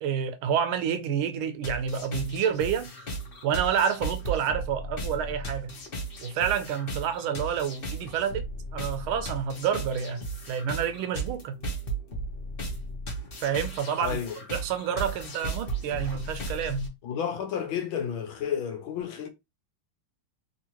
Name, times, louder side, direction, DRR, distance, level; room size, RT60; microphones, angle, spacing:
voice 1, 0.0-2.9 3.4-5.8 6.2-8.4 8.7-10.2 10.5-11.5 13.4-14.2 14.5-16.9, right 8 dB, 80° right, 1.5 m, -28 dB
sound 1, 1.6-16.9, right 2 dB, 45° left, 0.7 m, -36 dB
voice 2, 14.0-14.4 17.0-19.3, left 8 dB, 75° left, 1.4 m, -31 dB
3.6 x 2.8 x 2.9 m
omnidirectional pair, 2.3 m